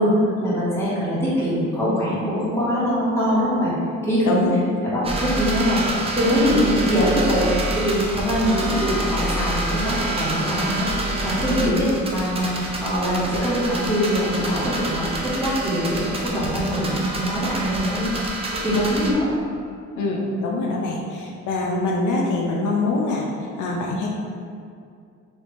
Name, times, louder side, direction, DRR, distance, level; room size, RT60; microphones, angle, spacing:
voice 1, 0.0-3.7 4.0-4.5 4.8-15.0 15.4-18.0 18.6-19.3, equal, 10° left, -10 dB, 1.5 m, -22 dB
sound 1, 5.0-19.1, right 1 dB, 20° right, 0.6 m, -27 dB
voice 2, 20.0-23.3 23.6-24.1, left 2 dB, 75° left, -2 dB, 0.6 m, -24 dB
3.3 x 2.7 x 3.4 m, 2.3 s
cardioid pair, 90°, 30 cm